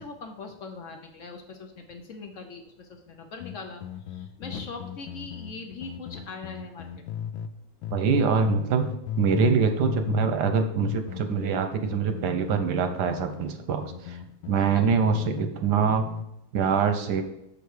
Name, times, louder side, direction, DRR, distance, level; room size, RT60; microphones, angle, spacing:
voice 1, 0.0-3.8 4.1-6.9 10.0-10.1 14.7-14.8, left 4 dB, 65° left, 5 dB, 0.8 m, -41 dB
sound 1, 3.4-7.5 7.8-9.6 9.8-15.5 15.8-16.3, left 9 dB, 85° left, 1.4 m, -35 dB
voice 2, 7.9-8.9 9.2-14.2 14.5-16.0 16.5-17.2, right 6 dB, 70° right, 7 dB, 1.1 m, -24 dB
6.9 x 5.0 x 4.7 m, 0.82 s
omnidirectional pair, 2.1 m